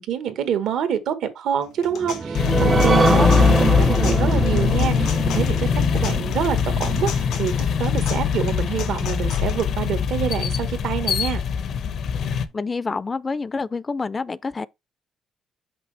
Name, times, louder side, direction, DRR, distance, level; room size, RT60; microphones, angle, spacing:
voice 1, 0.0-11.4, right 9 dB, 80° right, 1.2 m, -27 dB
sound 1, 1.6-9.6, left 7 dB, 90° left, 2.1 m, -36 dB
sound 2, 1.9-9.0 9.4-9.5 9.9-10.0, right 4 dB, 30° right, 0.6 m, -25 dB
sound 3, 2.3-12.5, left 7 dB, 70° left, 0.8 m, -22 dB
voice 2, 3.1-3.5 12.5-14.7, left 4 dB, 30° left, 0.4 m, -27 dB
6.0 x 5.4 x 3.3 m
cardioid pair, 90°, 0 cm